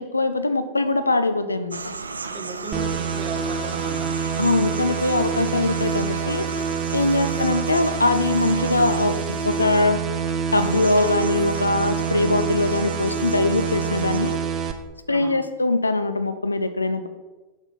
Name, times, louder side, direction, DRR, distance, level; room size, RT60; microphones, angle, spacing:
voice 1, 0.0-1.9 4.4-6.5 6.9-10.0 10.5-14.4 15.1-17.1, left 2 dB, 80° left, 10 dB, 0.5 m, -22 dB
sound 1, 1.7-14.4, right 4 dB, 75° right, 0.3 m, -35 dB
voice 2, 2.2-4.2 7.3-7.5 15.1-15.4, right 5 dB, 40° right, 2 dB, 1.3 m, -36 dB
sound 2, 2.7-14.7, right 6 dB, 25° right, 0.6 m, -27 dB
6.0 x 4.3 x 5.3 m, 1.2 s
figure-of-eight pair, 90°, 0 cm